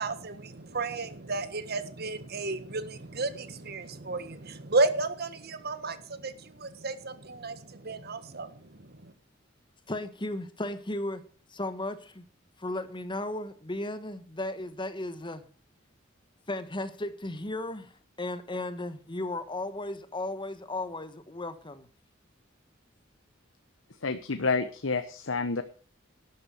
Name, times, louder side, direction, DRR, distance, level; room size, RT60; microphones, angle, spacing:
voice 1, 0.0-9.1, right 3 dB, 55° right, 1.5 m, -33 dB
voice 2, 9.9-11.2 11.5-12.2 12.6-15.4 16.5-17.9 18.2-21.9, left 2 dB, 25° left, 1.4 m, -35 dB
voice 3, 24.0-25.6, left 4 dB, 85° left, 1.1 m, -29 dB
12.0 x 10.5 x 6.4 m
head